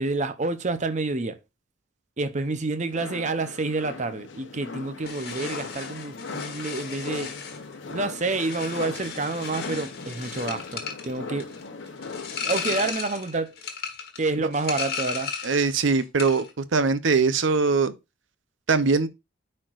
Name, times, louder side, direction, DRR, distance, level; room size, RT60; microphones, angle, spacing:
voice 1, 0.0-1.4 2.2-7.3 7.9-11.5 12.4-13.5 14.2-15.3, right 3 dB, 40° right, 0.7 m, -28 dB
sound 1, 2.9-12.9, left 4 dB, 75° left, 0.9 m, -39 dB
sound 2, 5.0-15.7 16.0-16.5, left 6 dB, 55° left, 1.6 m, -35 dB
voice 2, 15.4-17.9 18.7-19.1, right 4 dB, 80° right, 0.7 m, -22 dB
10.0 x 4.4 x 2.5 m
head